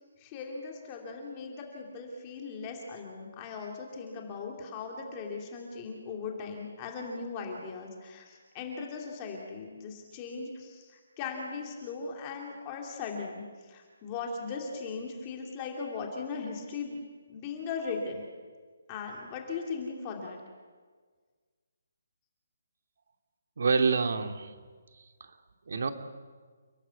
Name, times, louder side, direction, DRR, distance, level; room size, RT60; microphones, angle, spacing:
voice 1, 0.2-17.0 17.3-18.3 18.9-20.4, left 4 dB, 15° left, 1 dB, 2.7 m, -38 dB
voice 2, 23.6-24.5 25.2-25.3 25.7-25.9, right 4 dB, 55° right, 7 dB, 2.4 m, -27 dB
29.5 x 19.0 x 8.3 m, 1.5 s
hypercardioid pair, 175°, 0 cm